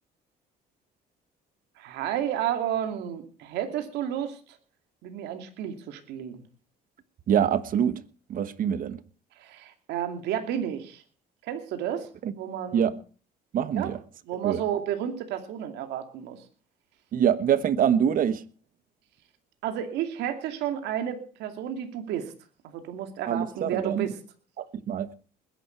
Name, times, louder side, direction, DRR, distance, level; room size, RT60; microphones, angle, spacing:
voice 1, 1.8-4.4 5.0-6.4 9.4-11.0 11.4-12.1 12.4-12.9 13.7-13.9 14.3-16.4 19.6-22.3 22.7-24.2, right 10 dB, 85° right, 2.6 m, -31 dB
voice 2, 7.3-8.0 8.3-9.0 12.2-12.3 12.7-13.0 13.5-14.0 14.4-14.6 17.1-18.4 23.3-24.1 24.6-25.1, right 9 dB, 55° right, 1.3 m, -25 dB
20.5 x 11.0 x 4.6 m
cardioid pair, 110°, 17 cm